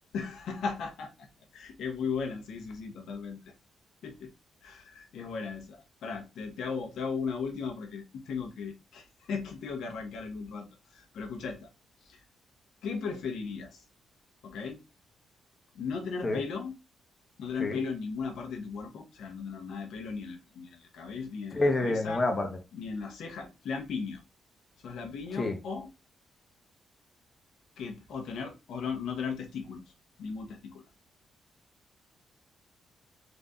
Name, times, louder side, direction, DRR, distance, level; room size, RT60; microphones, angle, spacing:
voice 1, 0.1-1.3 1.5-3.4 4.0-4.3 4.6-10.7 10.9-11.7 12.0-12.2 12.8-13.8 14.4-14.8 15.7-16.8 17.4-22.2 22.7-24.2 24.8-25.9 27.8-29.8 30.2-30.8, left 5 dB, 80° left, 1.0 m, -36 dB
voice 2, 21.5-22.6 25.4-25.6, left 2 dB, 25° left, 0.8 m, -27 dB
3.9 x 2.7 x 3.6 m
wide cardioid pair, 160°, 0 cm